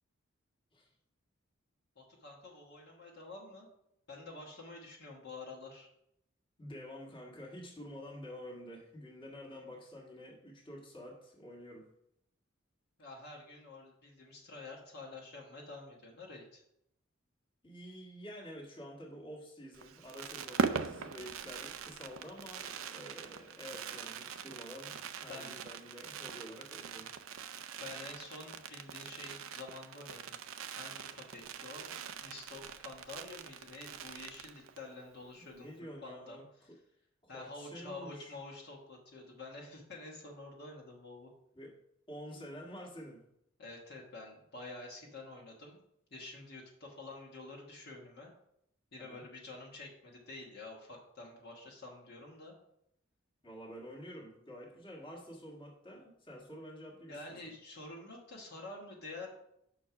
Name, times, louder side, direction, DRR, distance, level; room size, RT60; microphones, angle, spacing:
voice 1, 1.9-3.7 4.1-5.9 13.0-16.6 25.3-25.6 27.8-30.4 30.8-31.9 32.2-35.7 36.0-36.4 36.6-36.7 37.3-41.3 43.6-45.8 46.1-48.3 48.9-52.5 57.1-59.3, left 2 dB, 55° left, -2 dB, 1.4 m, -48 dB
voice 2, 6.6-11.9 17.6-27.1 35.5-36.8 37.2-38.3 41.5-41.7 42.1-43.2 49.0-49.3 53.4-57.4, equal, 25° left, -2 dB, 1.6 m, -49 dB
Fireworks, 19.7-34.9 35.2-35.3 35.5-35.8, right 6 dB, 85° right, 0.5 m, -42 dB
5.9 x 4.5 x 5.8 m, 0.76 s
head